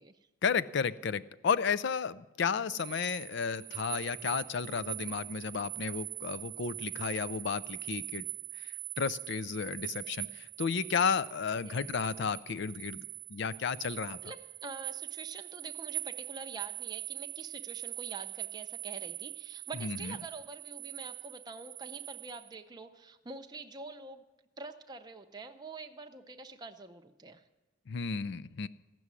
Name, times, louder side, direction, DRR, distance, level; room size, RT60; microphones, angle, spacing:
voice 1, 0.4-8.3 9.0-13.0 13.3-14.2 19.8-20.1 27.9-28.7, left 6 dB, 55° left, 18 dB, 0.4 m, -33 dB
sound 1, 2.7-22.5, right 18 dB, 70° right, 0.6 m, -42 dB
voice 2, 11.6-11.9 14.2-24.2 24.6-27.5, right 3 dB, 20° right, 5 dB, 0.6 m, -46 dB
15.5 x 6.1 x 9.7 m, 1.1 s
head